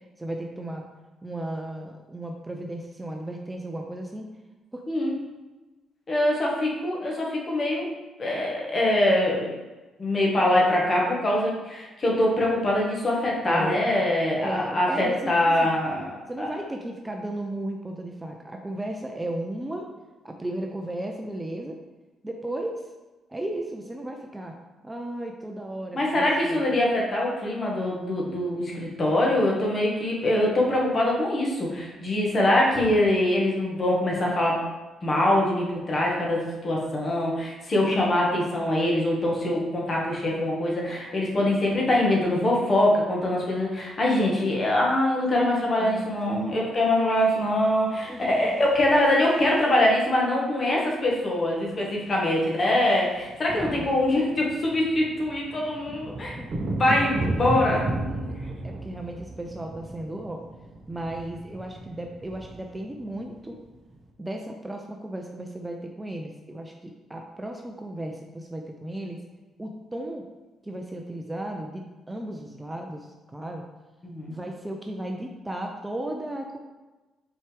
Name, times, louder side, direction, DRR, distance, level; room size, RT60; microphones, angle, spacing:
voice 1, 0.2-0.8 1.2-4.3 4.7-4.8 13.5-13.8 14.4-15.7 16.3-19.9 20.2-21.8 22.2-22.9 23.3-24.5 24.8-26.6 45.8-46.7 48.1-48.7 53.6-54.0 56.4-56.5 57.0-58.4 58.6-60.4 60.9-63.6 64.2-69.2 69.6-70.2 70.6-73.6 74.3-76.6, right 1 dB, 15° right, 2 dB, 0.5 m, -35 dB
voice 2, 6.1-7.9 8.2-9.5 10.0-16.5 25.9-34.6 35.0-56.3 56.8-57.8 74.0-74.4, left 1 dB, 40° left, -3 dB, 1.7 m, -23 dB
sound 1, 48.3-49.8 51.1-51.2 51.4-51.7 51.9-64.0, right 2 dB, 40° right, 0.9 m, -35 dB
6.0 x 4.6 x 3.4 m, 1.2 s
cardioid pair, 90°, 0 cm